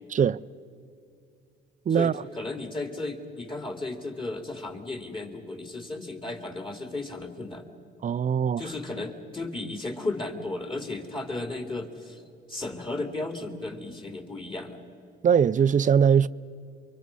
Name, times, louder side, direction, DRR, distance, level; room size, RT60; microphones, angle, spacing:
voice 1, 1.9-7.7 8.6-12.2 12.5-14.8, left 2 dB, 25° left, 3.0 m, -34 dB
voice 2, 8.0-8.6 15.2-16.3, right 7 dB, 40° right, 0.5 m, -21 dB
28.5 x 24.0 x 5.5 m
cardioid pair, 85°, 21 cm